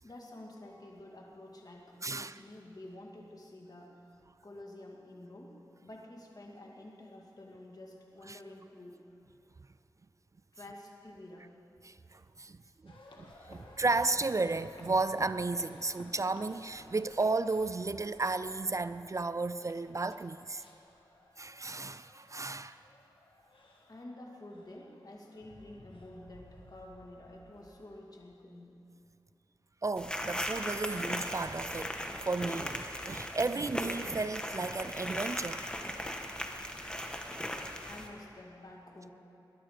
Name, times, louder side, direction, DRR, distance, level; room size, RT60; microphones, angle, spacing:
voice 1, 0.0-3.9 4.4-9.0 10.5-11.5 23.9-28.7 37.3-37.5 37.8-39.1, left 1 dB, 50° left, 0 dB, 2.4 m, -50 dB
voice 2, 2.0-2.4 8.3-8.4 11.8-20.6 21.4-22.8 29.8-35.6, right 3 dB, 40° right, 14 dB, 0.4 m, -34 dB
sound 1, 12.9-28.0, left 2 dB, 85° left, 1.7 m, -57 dB
sound 2, 30.0-38.1, equal, 10° left, 1.4 m, -38 dB
21.0 x 11.0 x 5.0 m, 2.7 s
cardioid pair, 45°, 8 cm